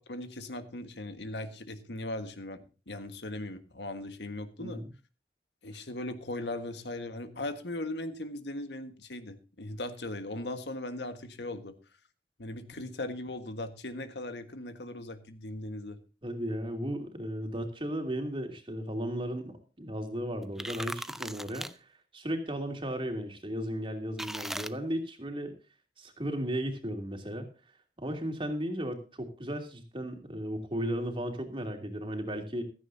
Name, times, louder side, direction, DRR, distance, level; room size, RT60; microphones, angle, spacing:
voice 1, 0.0-4.8 5.6-11.7 12.4-16.0, left 1 dB, 75° left, 9 dB, 1.6 m, -38 dB
voice 2, 16.2-21.7 22.1-25.6 26.0-27.5 28.0-32.6, equal, 30° right, 4 dB, 2.9 m, -35 dB
sound 1, 20.4-21.7 24.2-24.7, right 1 dB, ahead, 0.5 m, -38 dB
15.5 x 14.0 x 2.8 m, 0.33 s
head